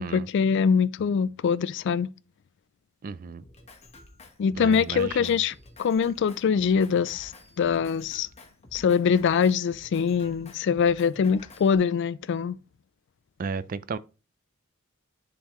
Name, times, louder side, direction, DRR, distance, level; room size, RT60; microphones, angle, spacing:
voice 1, 0.0-2.1 4.4-7.3 7.6-8.3 8.7-12.5, left 6 dB, 55° left, 0.3 m, -23 dB
voice 2, 3.0-3.4 4.6-5.4 13.4-14.0, right 5 dB, 40° right, 0.4 m, -34 dB
Drum kit, 3.4-11.8, left 2 dB, 30° left, 1.1 m, -50 dB
10.0 x 3.7 x 3.0 m
head